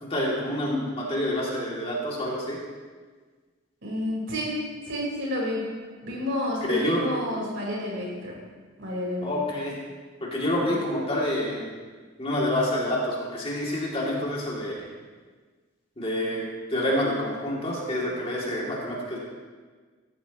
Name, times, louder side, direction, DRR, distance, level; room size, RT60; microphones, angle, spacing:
voice 1, 0.0-2.6 6.7-7.1 9.2-9.8 10.2-11.7 12.2-14.9 16.0-16.5 16.7-19.2, left 1 dB, 30° left, -4 dB, 2.8 m, -27 dB
voice 2, 3.8-4.6 4.9-5.7 6.0-8.4 8.8-9.3 10.6-10.7, left 1 dB, 65° right, -4 dB, 4.5 m, -30 dB
17.0 x 13.0 x 3.1 m, 1.4 s
head